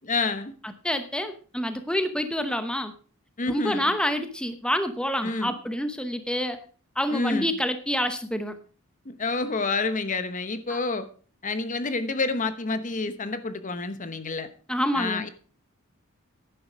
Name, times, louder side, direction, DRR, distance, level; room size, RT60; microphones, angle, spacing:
voice 1, 0.0-0.5 3.4-3.9 5.2-5.6 7.1-7.6 9.0-11.1 11.4-14.5 14.9-15.3, left 3 dB, 40° left, 11 dB, 1.0 m, -28 dB
voice 2, 0.8-2.9 3.5-6.6 7.0-8.6 10.7-10.8 14.7-15.3, equal, 5° left, 9 dB, 0.9 m, -27 dB
11.0 x 9.5 x 5.1 m, 0.40 s
head